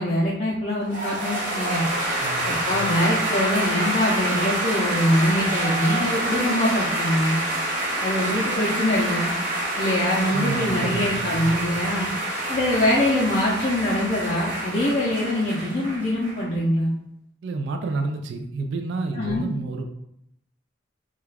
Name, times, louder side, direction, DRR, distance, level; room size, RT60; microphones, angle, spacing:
voice 1, 0.0-1.8 2.5-7.4 8.0-9.3 9.8-12.1 12.5-16.9 19.1-19.5, left 1 dB, 40° left, -6 dB, 0.5 m, -23 dB
sound 1, 0.9-16.4, right 1 dB, 45° right, 0.8 m, -27 dB
voice 2, 2.2-2.6 10.3-11.2 17.4-19.9, right 3 dB, 70° right, 5 dB, 0.3 m, -29 dB
2.3 x 2.3 x 3.2 m, 0.75 s
head